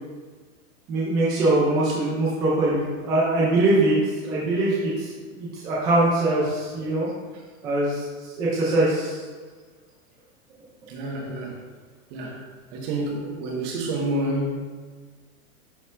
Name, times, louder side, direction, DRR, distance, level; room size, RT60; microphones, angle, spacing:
voice 1, 0.9-4.0 4.2-5.1 5.4-7.1 7.6-9.2, right 2 dB, 10° right, -7 dB, 0.3 m, -22 dB
voice 2, 10.9-11.6 12.1-12.4 12.7-14.6, right 1 dB, 40° right, 0 dB, 1.4 m, -29 dB
10.5 x 4.1 x 2.5 m, 1.5 s
supercardioid pair, 145°, 44 cm